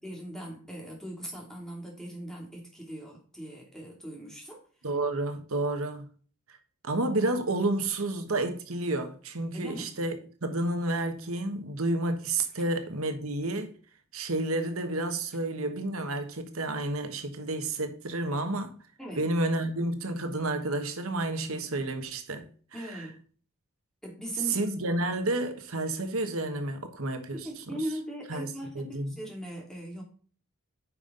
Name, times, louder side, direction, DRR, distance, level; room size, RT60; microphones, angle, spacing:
voice 1, 0.0-4.6 9.5-9.9 19.0-19.2 22.7-23.2 24.0-24.6 27.3-30.0, equal, ahead, 2.7 m, -39 dB
voice 2, 4.8-6.1 6.5-6.6 6.8-13.7 14.1-18.7 19.2-23.1 24.5-27.5 28.3-28.5 28.7-29.2, right 2 dB, 75° right, 1.3 m, -30 dB
9.5 x 5.5 x 3.8 m
head